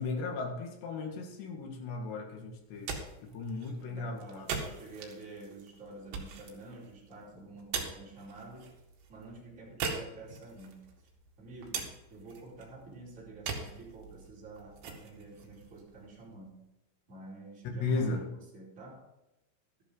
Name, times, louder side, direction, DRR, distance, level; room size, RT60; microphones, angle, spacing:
voice 1, 0.0-4.6 17.8-18.3, left 3 dB, 65° left, 2 dB, 3.7 m, -36 dB
sound 1, 2.6-16.5, right 5 dB, 65° right, 3.8 m, -43 dB
voice 2, 3.8-8.7 9.1-10.9 11.4-16.6 17.1-18.1 18.5-19.1, right 2 dB, 15° right, -7 dB, 4.8 m, -49 dB
13.0 x 11.5 x 3.9 m, 0.93 s
omnidirectional pair, 5.7 m